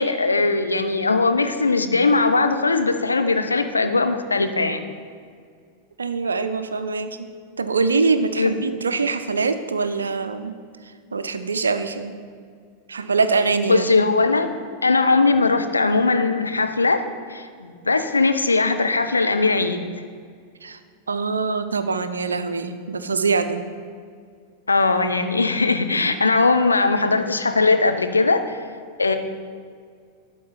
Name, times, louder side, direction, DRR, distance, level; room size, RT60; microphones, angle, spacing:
voice 1, 0.0-4.8 8.4-8.6 13.7-14.5 14.8-17.0 17.3-19.9 24.7-28.6 29.0-29.2, left 3 dB, 80° left, 7 dB, 0.5 m, -20 dB
voice 2, 6.0-7.3 7.6-10.5 11.1-12.2 12.9-13.9 20.6-20.8 21.1-23.6, right 4 dB, 75° right, 10 dB, 0.4 m, -23 dB
11.5 x 3.9 x 4.8 m, 2.1 s
figure-of-eight pair, 90°, 0 cm